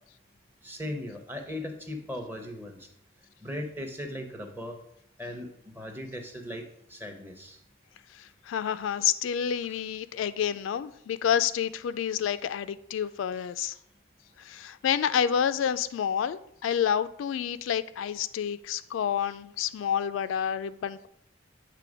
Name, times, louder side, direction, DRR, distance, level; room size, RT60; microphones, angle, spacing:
voice 1, 0.6-2.9 3.4-4.8 5.2-7.6, left 1 dB, 10° right, 0.7 m, -38 dB
voice 2, 8.1-13.8 14.4-21.1, left 8 dB, 85° left, 0.3 m, -29 dB
7.6 x 3.3 x 5.0 m
head